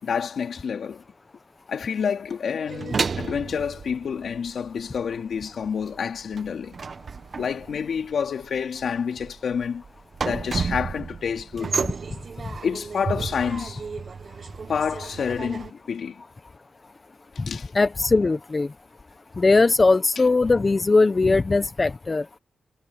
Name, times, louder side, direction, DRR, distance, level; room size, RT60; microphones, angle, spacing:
voice 1, 0.0-1.0 1.7-6.8 7.4-9.8 10.2-11.8 12.6-13.8 14.7-16.2 17.5-17.7, left 6 dB, 65° left, 3.7 m, -28 dB
sound 1, 2.7-4.9 5.1-15.7, right 5 dB, 45° right, 1.2 m, -32 dB
voice 2, 17.7-18.7 19.4-22.2, left 3 dB, 30° left, 0.8 m, -19 dB
wide cardioid pair, 110°, 0 cm